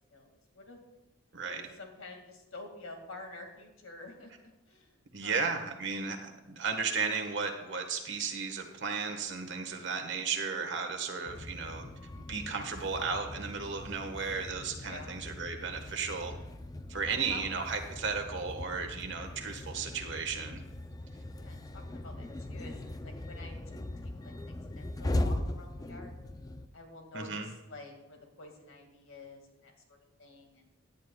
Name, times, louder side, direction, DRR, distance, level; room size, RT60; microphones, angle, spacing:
voice 1, 0.1-0.8 1.5-5.5 14.8-15.1 17.0-17.4 21.4-26.1 26.7-30.7, left 2 dB, 80° left, 3 dB, 2.1 m, -49 dB
voice 2, 5.1-11.9 12.3-16.3 16.9-20.6 27.1-27.5, right 5 dB, 60° right, 5 dB, 1.5 m, -34 dB
sound 1, 11.3-26.7, left 1 dB, 20° left, 0.4 m, -39 dB
16.5 x 10.5 x 2.3 m, 1.0 s
head